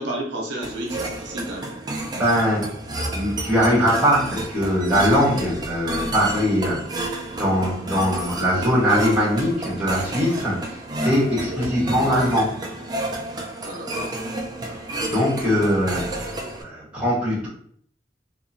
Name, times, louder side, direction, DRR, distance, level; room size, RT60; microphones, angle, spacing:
voice 1, 0.0-1.7 11.4-11.7 13.6-14.2, right 1 dB, 75° right, 0 dB, 0.6 m, -32 dB
sound 1, 0.6-16.6, right 1 dB, 20° right, 0.4 m, -31 dB
voice 2, 2.1-2.7 3.1-6.8 7.3-12.6 15.1-16.2 16.6-17.5, equal, 5° right, -6 dB, 1.1 m, -21 dB
2.8 x 2.4 x 2.6 m, 0.62 s
head